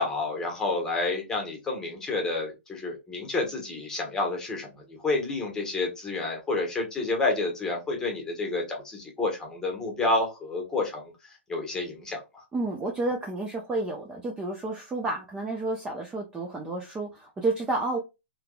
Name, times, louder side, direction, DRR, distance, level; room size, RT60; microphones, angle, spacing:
voice 1, 0.0-11.1 11.5-12.4, left 2 dB, 10° left, 1.1 m, -29 dB
voice 2, 12.5-18.0, right 2 dB, 10° right, 0.5 m, -30 dB
3.4 x 2.9 x 2.2 m
hypercardioid pair, 145°, 7 cm